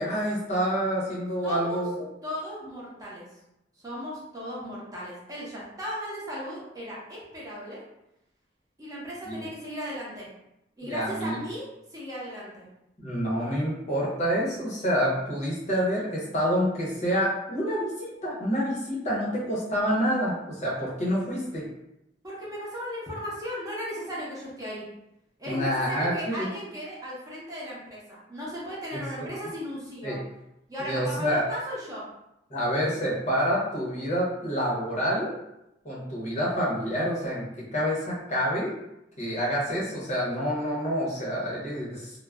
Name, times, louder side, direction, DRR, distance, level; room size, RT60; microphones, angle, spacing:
voice 1, 0.0-2.0 9.3-9.4 10.8-11.4 13.0-21.6 25.5-26.5 30.0-30.2 30.8-31.4 32.5-35.4 35.8-37.5 37.7-38.7 39.2-42.1, equal, 40° left, -5 dB, 0.7 m, -27 dB
voice 2, 1.4-1.8 2.2-3.3 3.8-7.8 8.8-10.3 10.8-12.7 22.2-24.8 25.4-30.2 30.7-32.0, equal, 20° right, -6 dB, 0.7 m, -36 dB
2.3 x 2.0 x 3.4 m, 0.86 s
head